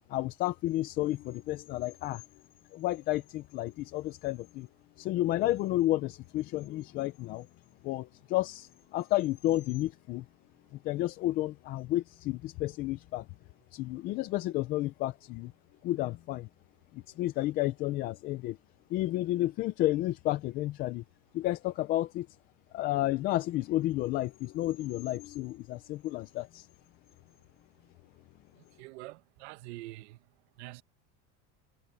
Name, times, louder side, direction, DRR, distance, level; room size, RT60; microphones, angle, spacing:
voice 1, 0.1-2.2 2.7-4.7 5.0-7.5 7.8-10.2 10.8-13.3 13.7-15.5 15.8-16.5 16.9-18.6 18.9-21.0 21.3-22.3 22.7-26.7, left 16 dB, 30° left, 0.4 m, -31 dB
voice 2, 28.8-30.2 30.6-30.8, right 18 dB, 75° right, 1.6 m, -45 dB
cardioid pair, 180°, 34 cm